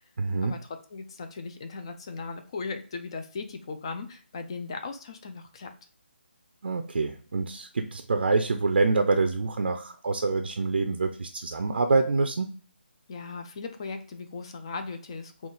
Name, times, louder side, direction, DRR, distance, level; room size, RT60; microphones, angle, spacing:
voice 1, 0.2-0.5 6.6-12.5, right 3 dB, 65° right, 6 dB, 0.5 m, -26 dB
voice 2, 0.9-5.7 13.1-15.5, left 4 dB, 25° left, 7 dB, 0.4 m, -37 dB
3.9 x 2.4 x 3.7 m, 0.41 s
hypercardioid pair, 165°, 6 cm